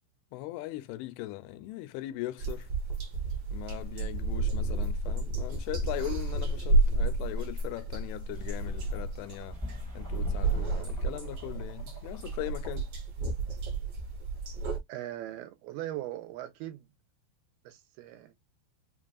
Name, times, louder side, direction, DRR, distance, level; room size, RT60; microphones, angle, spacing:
voice 1, 0.3-2.7 3.5-9.6 9.9-12.9, left 16 dB, 85° left, 2.5 m, -39 dB
sound 1, 2.4-14.8, right 2 dB, 50° right, 1.8 m, -31 dB
sound 2, 8.3-12.9, left 1 dB, 10° right, 1.2 m, -43 dB
voice 2, 14.9-16.9 17.7-18.3, right 14 dB, 80° right, 2.7 m, -39 dB
6.0 x 2.5 x 2.3 m
omnidirectional pair, 4.5 m